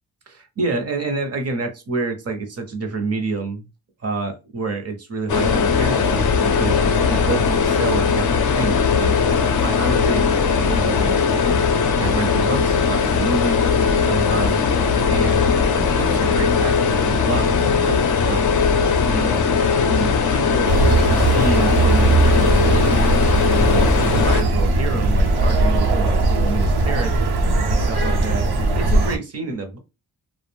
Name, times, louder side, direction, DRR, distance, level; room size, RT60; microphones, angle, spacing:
voice 1, 0.3-3.7 4.0-6.8 7.1-9.2 9.6-10.3 10.6-11.6 12.0-14.6 15.0-15.4 15.8-18.5 19.0-20.8 21.1-23.0 23.4-27.1 27.7-28.5 28.8-29.8, right 3 dB, 40° right, 6 dB, 0.6 m, -28 dB
sound 1, 5.3-24.4, left 5 dB, 55° left, 0.5 m, -19 dB
sound 2, 20.7-29.2, right 2 dB, 80° right, 0.8 m, -19 dB
2.4 x 2.0 x 3.1 m, 0.27 s
wide cardioid pair, 145°, 38 cm